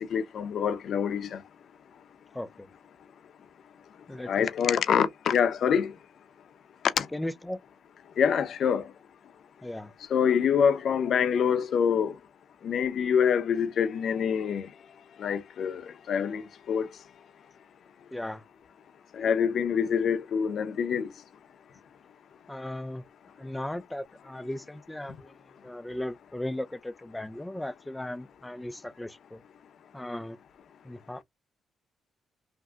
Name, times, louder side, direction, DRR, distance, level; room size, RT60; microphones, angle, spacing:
voice 1, 0.1-1.4 4.3-5.9 7.0-7.1 8.2-8.9 10.1-12.1 12.6-14.7 15.2-15.8 16.1-16.4 16.7-16.9 19.1-21.1, left 7 dB, 60° left, 0.6 m, -25 dB
voice 2, 2.3-2.7 4.1-4.5 7.1-7.6 9.6-9.9 18.1-18.4 22.5-23.0 23.4-25.4 25.6-29.4 29.9-30.4 30.8-31.2, left 1 dB, 10° left, 0.4 m, -37 dB
3.6 x 2.6 x 2.3 m
cardioid pair, 90°, 0 cm